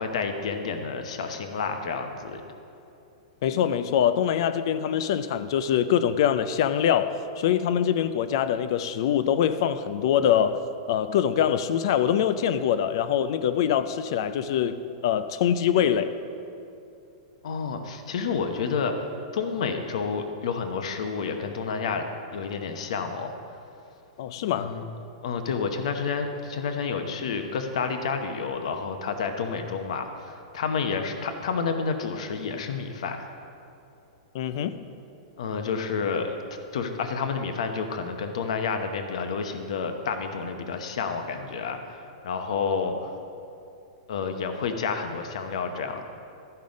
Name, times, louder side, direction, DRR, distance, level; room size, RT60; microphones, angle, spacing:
voice 1, 0.0-2.4 17.4-19.0 19.3-23.3 24.6-24.8 25.2-33.4 35.4-36.3 36.7-43.1 44.1-46.0, left 5 dB, 60° left, 6 dB, 0.9 m, -30 dB
voice 2, 3.4-10.6 10.9-16.1 24.2-24.7 34.3-34.8, left 9 dB, 45° left, 13 dB, 0.4 m, -24 dB
12.5 x 5.5 x 5.1 m, 2.7 s
supercardioid pair, 180°, 4 cm